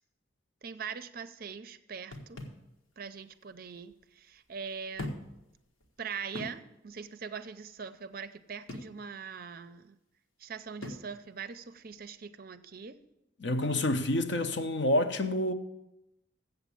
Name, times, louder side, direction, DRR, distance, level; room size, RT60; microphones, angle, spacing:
voice 1, 0.6-2.4 3.0-5.2 6.0-10.0 10.4-13.0, right 6 dB, 45° right, 0.5 m, -42 dB
sound 1, 2.1-2.7 3.8-3.9 4.9-5.4 5.8-5.9 6.3-6.6 8.7-9.0 10.8-11.1, left 1 dB, 90° left, 1.5 m, -40 dB
voice 2, 13.4-15.5, left 1 dB, 60° left, 0.7 m, -28 dB
7.9 x 7.2 x 8.4 m
head